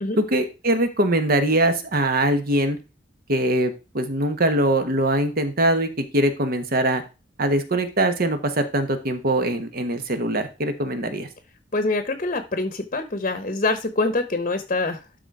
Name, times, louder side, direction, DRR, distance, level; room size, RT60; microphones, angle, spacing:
voice 1, 0.2-2.8 3.3-7.0 7.4-11.3, right 1 dB, 50° right, 8 dB, 1.3 m, -22 dB
voice 2, 11.7-15.2, left 2 dB, 40° left, 10 dB, 0.9 m, -25 dB
12.0 x 4.1 x 4.7 m, 0.29 s
head